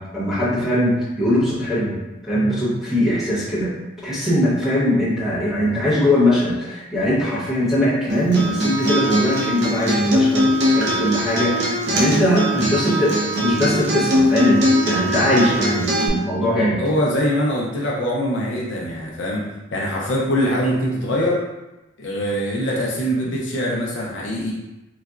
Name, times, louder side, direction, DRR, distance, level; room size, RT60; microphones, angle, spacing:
voice 1, 0.0-2.0 2.2-3.7 4.0-16.8, left 1 dB, ahead, -10 dB, 1.0 m, -21 dB
Acoustic guitar, 8.1-16.1, equal, 55° right, 0.6 m, -21 dB
voice 2, 16.8-19.4 19.7-21.4 22.0-24.5, equal, 60° left, -3 dB, 0.5 m, -23 dB
4.0 x 2.2 x 2.3 m, 1.0 s
head